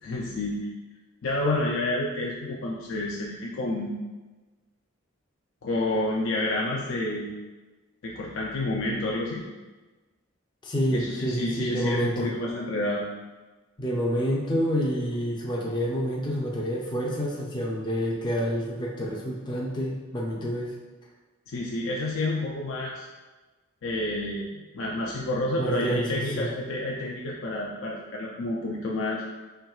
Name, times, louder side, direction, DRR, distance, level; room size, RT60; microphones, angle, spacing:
voice 1, 0.0-0.7 1.2-3.9 5.6-7.3 8.0-9.5 10.9-13.0 21.5-23.0 23.8-29.2, left 2 dB, 75° left, -3 dB, 0.4 m, -29 dB
voice 2, 10.6-12.3 13.8-20.7 25.6-26.5, equal, 20° left, -3 dB, 0.5 m, -28 dB
4.4 x 3.6 x 2.3 m, 1.2 s
head